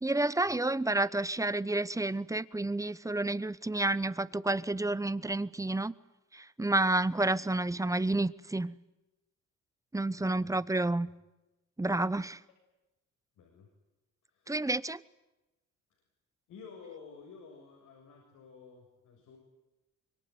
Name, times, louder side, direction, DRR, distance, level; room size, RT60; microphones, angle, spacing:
voice 1, 0.0-5.9 6.3-8.7 9.9-11.1 11.8-12.4 14.5-15.0, right 2 dB, 10° right, 1.0 m, -30 dB
voice 2, 10.2-10.5 10.9-11.0 13.4-13.7 14.3-14.6 16.5-19.4, left 5 dB, 80° left, 7.2 m, -52 dB
25.5 x 23.0 x 9.5 m
cardioid pair, 90°, 30 cm